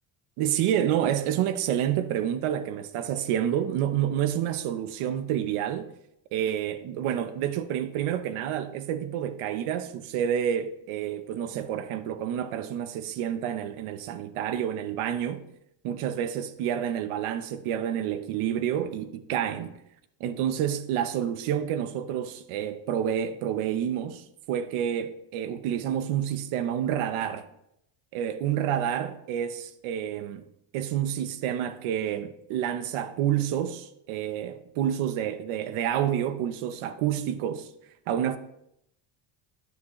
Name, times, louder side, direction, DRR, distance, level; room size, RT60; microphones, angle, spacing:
voice 1, 0.4-5.9 6.3-15.4 15.8-19.8 20.2-27.5 28.1-30.4 30.7-37.7 38.1-38.4, right 10 dB, 85° right, 0.9 m, -29 dB
10.5 x 8.6 x 3.1 m
cardioid pair, 125°, 49 cm